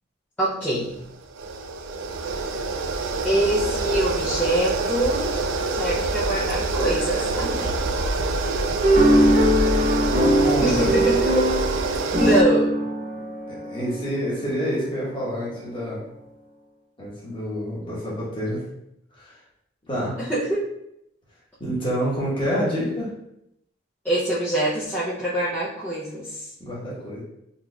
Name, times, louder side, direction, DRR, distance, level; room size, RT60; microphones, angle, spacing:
voice 1, 0.4-0.9 3.2-5.3 5.7-7.7 10.6-11.5 12.2-12.7 20.2-20.6 24.0-26.4, right 1 dB, 10° left, -11 dB, 0.5 m, -24 dB
sound 1, 0.8-12.4, right 2 dB, 70° right, 0.3 m, -26 dB
sound 2, 8.8-14.4, right 1 dB, 40° right, 0.7 m, -21 dB
voice 2, 10.0-10.9 13.5-16.0 17.0-18.6 19.2-19.4 19.8-20.2 21.6-23.1 26.6-27.2, equal, 25° left, -7 dB, 1.2 m, -28 dB
4.0 x 2.8 x 2.3 m, 0.79 s
head